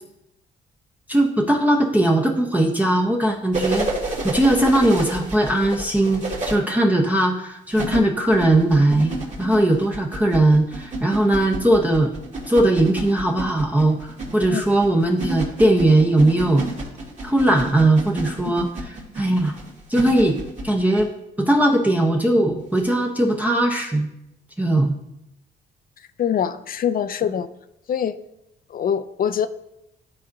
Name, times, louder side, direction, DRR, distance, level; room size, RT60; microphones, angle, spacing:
voice 1, 1.1-3.9 4.2-12.1 12.5-16.7 17.2-18.7 19.2-19.5 19.9-21.1 21.4-24.1 24.6-24.9, right 1 dB, 10° right, 0 dB, 0.7 m, -19 dB
sound 1, 3.5-6.5 7.7-21.1 22.8-22.9, right 2 dB, 35° right, 2.1 m, -30 dB
voice 2, 26.2-27.5 27.9-28.2 28.7-29.5, left 8 dB, 45° left, 12 dB, 0.4 m, -24 dB
12.0 x 4.1 x 2.6 m, 0.85 s
cardioid pair, 90°, 20 cm